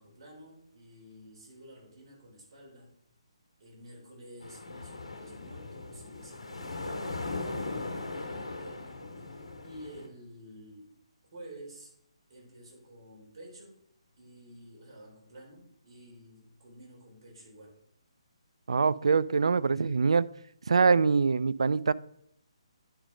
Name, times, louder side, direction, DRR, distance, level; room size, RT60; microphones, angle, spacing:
voice 1, 0.0-2.9 3.6-10.9 11.3-11.9 12.3-13.8 14.2-17.8, right 1 dB, 45° right, -2 dB, 4.0 m, -50 dB
sound 1, 4.4-10.1, left 3 dB, 80° left, 1.9 m, -39 dB
voice 2, 18.7-20.3 20.7-21.9, right 5 dB, 60° right, 19 dB, 0.4 m, -24 dB
10.0 x 5.2 x 5.1 m, 0.72 s
figure-of-eight pair, 140°, 3 cm